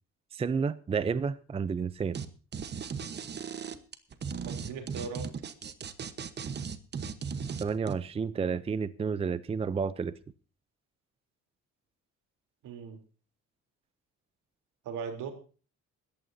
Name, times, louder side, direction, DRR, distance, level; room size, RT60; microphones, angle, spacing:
voice 1, 0.3-2.2 7.6-10.1, right 5 dB, 20° right, 0.5 m, -31 dB
sound 1, 2.1-2.3 2.5-7.9, right 6 dB, 35° right, 1.1 m, -36 dB
voice 2, 4.4-5.3 12.6-13.0 14.8-15.3, right 6 dB, 85° right, 3.5 m, -38 dB
20.0 x 14.5 x 2.7 m
cardioid pair, 140°, 30 cm